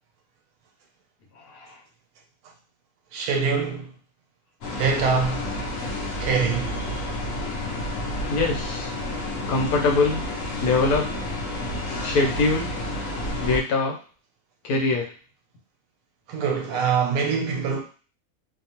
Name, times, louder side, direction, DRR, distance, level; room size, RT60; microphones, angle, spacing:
voice 1, 3.1-3.9 4.8-5.5 6.2-6.7 16.3-17.8, right 5 dB, 80° right, 1.1 m, -24 dB
sound 1, 4.6-13.6, left 1 dB, 65° left, 0.9 m, -30 dB
voice 2, 8.3-8.9 9.5-10.2 10.6-11.1 12.0-12.7 13.4-14.0 14.6-15.1, left 3 dB, 85° left, 1.2 m, -23 dB
2.9 x 2.0 x 2.8 m
omnidirectional pair, 1.6 m